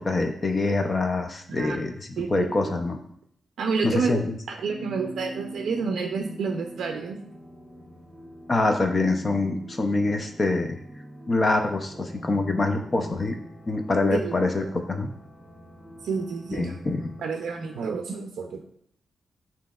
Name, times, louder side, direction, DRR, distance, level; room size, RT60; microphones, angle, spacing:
voice 1, 0.0-3.0 3.8-4.2 8.5-10.8 11.3-13.4 13.7-15.1 16.5-17.1, left 2 dB, 25° left, 5 dB, 0.4 m, -25 dB
voice 2, 1.5-1.8 2.2-2.5 3.6-4.2 4.5-7.2 14.1-14.4 16.0-16.8 17.2-18.6, right 5 dB, 70° right, 3 dB, 0.4 m, -29 dB
sound 1, 4.7-17.8, equal, ahead, 0.8 m, -43 dB
7.2 x 2.8 x 2.3 m, 0.66 s
wide cardioid pair, 160°, 0 cm